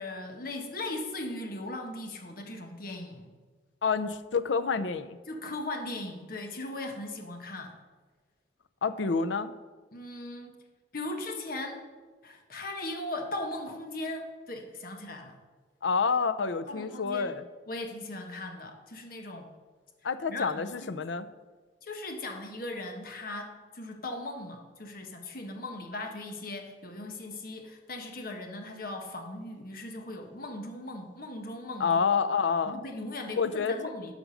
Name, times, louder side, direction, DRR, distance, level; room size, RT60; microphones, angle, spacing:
voice 1, 0.0-3.3 5.3-7.7 9.9-10.5 10.9-11.8 12.2-15.4 16.6-17.4 17.7-19.5 20.3-20.5 20.8-21.0 21.8-32.0 32.7-34.2, left 2 dB, 50° left, 3 dB, 1.3 m, -38 dB
voice 2, 3.8-5.2 8.8-9.5 15.8-17.4 20.0-21.3 31.8-32.8 33.4-33.9, left 5 dB, 90° left, 12 dB, 0.6 m, -28 dB
11.5 x 5.1 x 6.3 m, 1.4 s
head